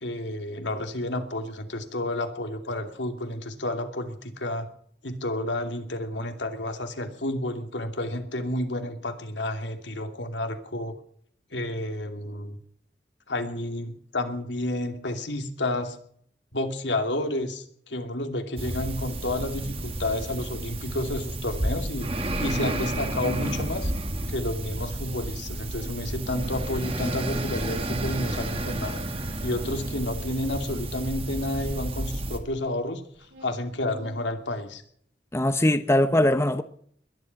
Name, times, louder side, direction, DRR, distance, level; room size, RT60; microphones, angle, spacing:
voice 1, 0.0-4.7 5.0-11.0 11.5-12.6 13.3-16.0 16.5-22.1 22.4-23.9 24.3-29.0 29.4-33.0 33.4-34.8, left 1 dB, 85° left, 2.7 m, -30 dB
sound 1, 18.6-32.4, right 1 dB, 35° right, 2.0 m, -31 dB
sound 2, 20.3-21.7 21.9-23.8 24.2-32.8 33.1-34.6, left 2 dB, 85° right, 4.9 m, -49 dB
voice 2, 35.3-36.6, left 1 dB, 15° left, 0.8 m, -21 dB
21.5 x 11.0 x 5.9 m
head